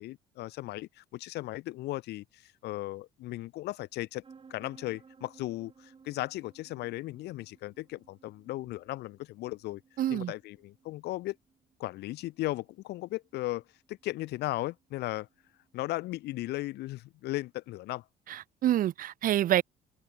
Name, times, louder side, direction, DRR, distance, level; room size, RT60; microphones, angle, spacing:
voice 1, 0.0-4.2 4.5-9.8 10.1-11.4 11.8-13.6 13.9-15.3 15.7-18.0, left 17 dB, 75° left, 0.9 m, -36 dB
sound 1, 4.2-15.7, right 5 dB, 30° right, 6.8 m, -60 dB
voice 2, 10.0-10.3 18.3-19.6, right 12 dB, 55° right, 0.8 m, -27 dB
open air
cardioid pair, 110°, 17 cm